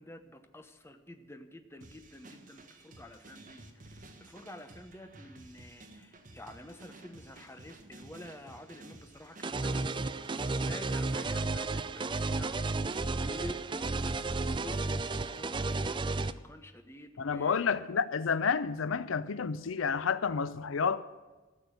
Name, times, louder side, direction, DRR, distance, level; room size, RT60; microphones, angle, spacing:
voice 1, 0.0-10.1 10.6-17.7, left 1 dB, 15° left, 0.9 m, -49 dB
sound 1, 1.8-16.0, right 2 dB, 40° right, 1.5 m, -54 dB
sound 2, 9.4-16.3, right 3 dB, 25° right, 0.4 m, -32 dB
voice 2, 17.2-21.0, left 6 dB, 85° left, 0.6 m, -30 dB
14.5 x 7.0 x 9.3 m
head